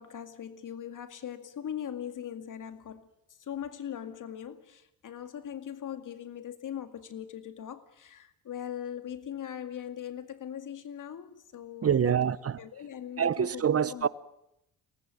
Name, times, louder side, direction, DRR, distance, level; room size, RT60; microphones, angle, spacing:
voice 1, 0.0-3.1 3.4-12.2 12.6-14.1, left 9 dB, 55° left, 2.2 m, -40 dB
voice 2, 11.8-12.6 13.2-14.1, right 8 dB, 40° right, 1.0 m, -26 dB
23.5 x 18.5 x 9.3 m
supercardioid pair, 70°, 37 cm